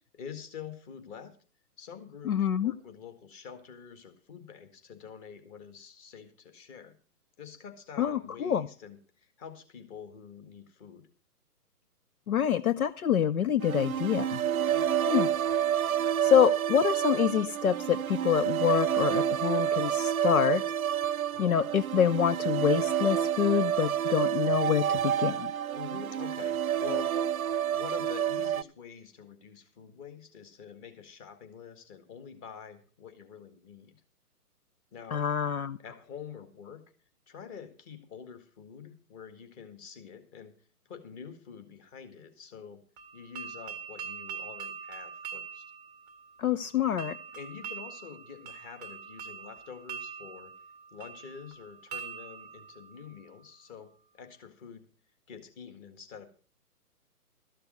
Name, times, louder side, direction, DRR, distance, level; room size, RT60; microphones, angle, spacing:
voice 1, 0.1-1.3 1.8-2.4 2.6-6.9 7.4-11.1 14.7-14.9 21.3-21.5 25.7-27.4 27.7-34.0 34.9-35.2 35.8-36.8 37.3-40.5 40.9-42.8 43.1-45.6 47.3-50.5 50.9-53.9 54.1-54.9 55.3-56.3, left 7 dB, 20° left, 7 dB, 1.8 m, -46 dB
voice 2, 2.2-2.7 8.0-8.7 12.3-14.4 15.1-15.3 16.2-20.6 21.4-25.5 35.1-35.8 46.4-47.2, left 9 dB, 65° left, 13 dB, 0.8 m, -26 dB
sound 1, 13.6-28.6, right 10 dB, 65° right, 0.6 m, -29 dB
sound 2, 43.0-53.8, right 6 dB, 15° right, 0.8 m, -44 dB
13.5 x 6.8 x 6.6 m, 0.38 s
figure-of-eight pair, 140°, 46 cm